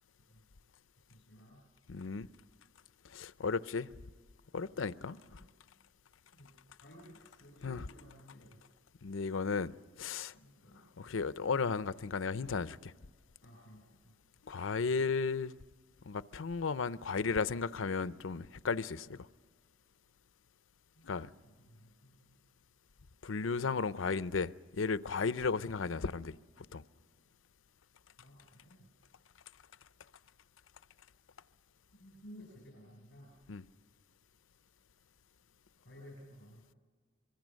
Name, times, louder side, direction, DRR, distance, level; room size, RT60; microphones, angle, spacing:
voice 1, 1.0-1.7 4.7-5.4 6.3-6.5 6.8-8.6 10.3-11.2 13.4-14.1 20.9-22.3 28.2-28.9 31.9-33.3 35.8-36.8, equal, 60° left, 7.6 m, -56 dB
voice 2, 1.9-2.3 3.0-3.9 4.5-5.4 7.6-7.8 9.0-10.3 11.0-12.9 14.5-15.6 16.1-19.3 21.0-21.3 23.2-26.8 33.5-33.6, left 4 dB, 85° left, 0.6 m, -35 dB
26.0 x 22.0 x 6.4 m
head